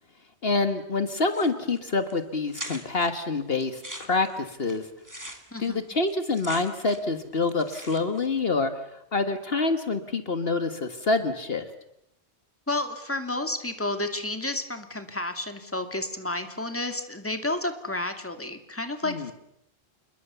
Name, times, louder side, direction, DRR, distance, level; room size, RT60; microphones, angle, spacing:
voice 1, 0.4-4.9 5.6-8.7 9.1-11.6 19.0-19.3, left 3 dB, 60° left, 9 dB, 1.7 m, -26 dB
sound 1, 1.3-1.8 2.1-2.2 2.5-3.1 3.6-7.2 7.4-8.3, right 1 dB, 15° right, 2.5 m, -41 dB
voice 2, 5.5-5.8 12.7-19.3, left 2 dB, 10° left, 7 dB, 2.3 m, -31 dB
28.0 x 21.5 x 7.0 m, 0.77 s
omnidirectional pair, 1.2 m